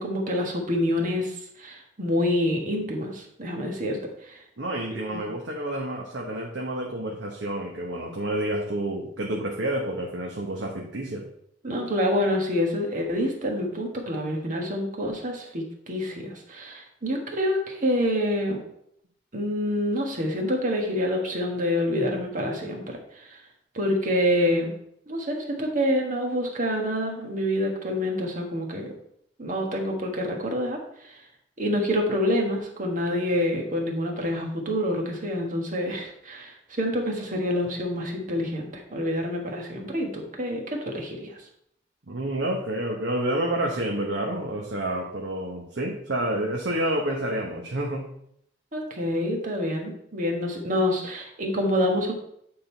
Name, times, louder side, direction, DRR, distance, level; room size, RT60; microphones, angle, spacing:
voice 1, 0.0-4.0 4.3-4.4 5.1-5.2 11.6-18.6 19.3-23.4 23.7-24.7 25.1-28.9 29.4-30.8 31.6-41.3 48.7-52.1, left 1 dB, 45° right, 1 dB, 1.4 m, -27 dB
voice 2, 4.6-11.2 42.1-48.1, right 1 dB, 80° right, -1 dB, 1.0 m, -29 dB
8.9 x 3.8 x 4.4 m, 0.71 s
head